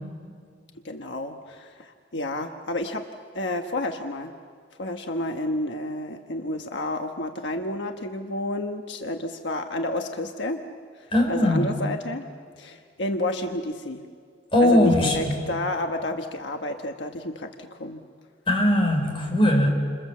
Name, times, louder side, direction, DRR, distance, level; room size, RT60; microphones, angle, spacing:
voice 1, 0.8-3.0 3.3-4.3 4.8-10.6 11.0-12.3 12.6-14.0 14.6-18.0, left 1 dB, 80° left, 5 dB, 1.3 m, -30 dB
voice 2, 11.1-11.8 14.5-15.5 18.5-19.7, left 1 dB, 30° left, 1 dB, 5.3 m, -20 dB
29.5 x 27.0 x 7.4 m, 2.1 s
head